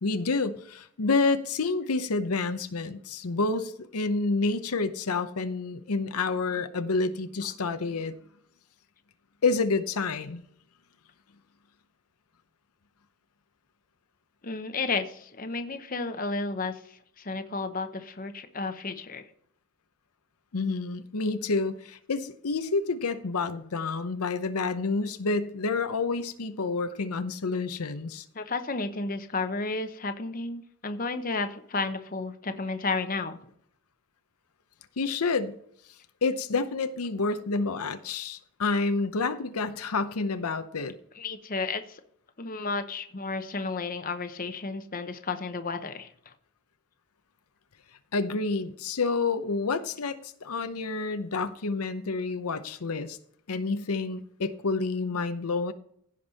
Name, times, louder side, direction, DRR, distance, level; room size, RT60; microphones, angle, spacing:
voice 1, 0.0-8.1 9.4-10.4 20.5-28.2 35.0-35.5 36.2-40.9 48.1-53.2 53.5-55.7, left 3 dB, 85° left, 0.8 m, -29 dB
voice 2, 14.4-16.8 17.2-19.2 28.3-33.4 41.2-42.0 42.4-46.1, left 3 dB, 40° left, 0.8 m, -32 dB
16.0 x 5.3 x 4.1 m
head